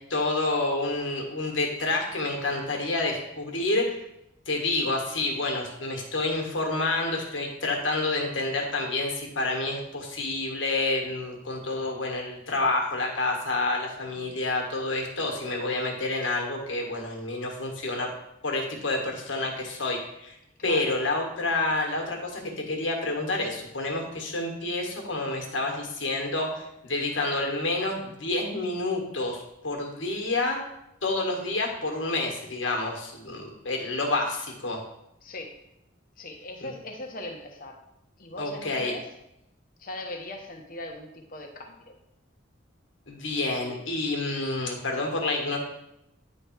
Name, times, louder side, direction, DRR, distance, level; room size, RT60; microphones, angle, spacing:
voice 1, 0.1-4.0 4.4-18.1 18.4-20.4 20.6-30.6 31.0-34.8 38.4-38.9 43.1-45.6, left 2 dB, 80° left, 1 dB, 1.5 m, -28 dB
voice 2, 14.1-14.4 20.6-20.9 31.3-31.5 35.2-35.6 36.2-37.8 38.2-39.1 39.8-41.9, left 1 dB, 45° left, 2 dB, 1.0 m, -40 dB
9.6 x 3.3 x 4.6 m, 0.85 s
head